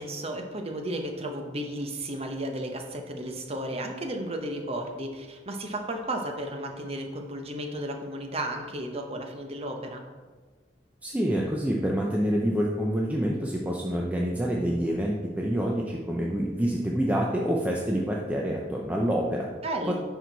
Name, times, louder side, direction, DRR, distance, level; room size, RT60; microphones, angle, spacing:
voice 1, 0.0-10.0 19.6-19.9, right 1 dB, 35° right, 4 dB, 0.9 m, -33 dB
voice 2, 11.0-19.5 19.9-20.0, equal, 10° right, -2 dB, 0.6 m, -27 dB
10.5 x 4.7 x 4.0 m, 1.4 s
head